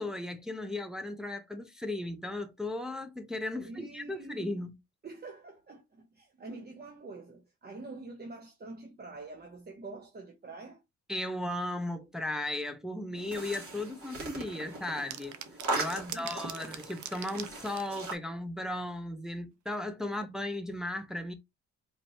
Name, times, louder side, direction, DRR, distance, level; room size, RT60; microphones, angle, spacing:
voice 1, 0.0-4.7 11.1-15.4 15.7-21.3, left 1 dB, ahead, 0.7 m, -36 dB
voice 2, 3.5-4.6 5.0-10.8 15.9-16.8 20.1-20.2, right 3 dB, 30° right, 1.0 m, -46 dB
sound 1, 13.1-18.2, right 2 dB, 50° right, 2.6 m, -39 dB
sound 2, 15.1-18.1, right 10 dB, 70° right, 0.6 m, -42 dB
4.4 x 3.1 x 2.7 m
cardioid pair, 90°, 30 cm